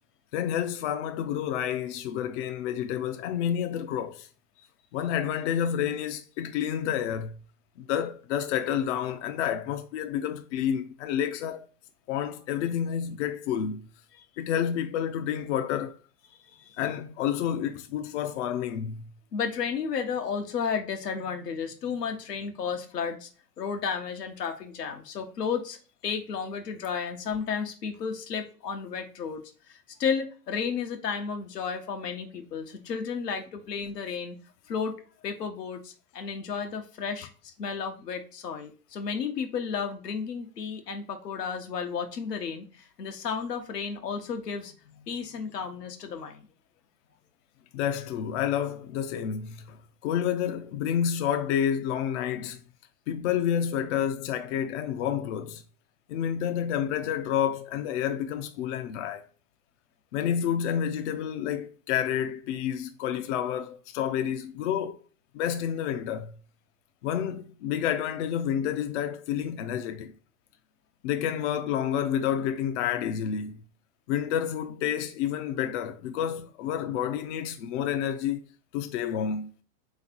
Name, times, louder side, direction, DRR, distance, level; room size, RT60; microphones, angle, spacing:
voice 1, 0.3-4.3 4.9-7.4 7.8-11.7 12.1-13.9 14.4-16.0 16.8-19.0 47.7-49.8 50.0-52.6 53.1-55.6 56.1-59.3 60.1-65.0 65.3-66.3 67.0-70.1 71.0-73.6 74.1-78.4 78.7-79.5, left 9 dB, 50° left, 0.5 m, -29 dB
voice 2, 16.5-16.8 19.3-23.3 23.6-25.8 26.0-34.4 34.7-46.4, left 6 dB, 85° left, 1.0 m, -33 dB
3.4 x 3.2 x 3.6 m
hypercardioid pair, 115°, 47 cm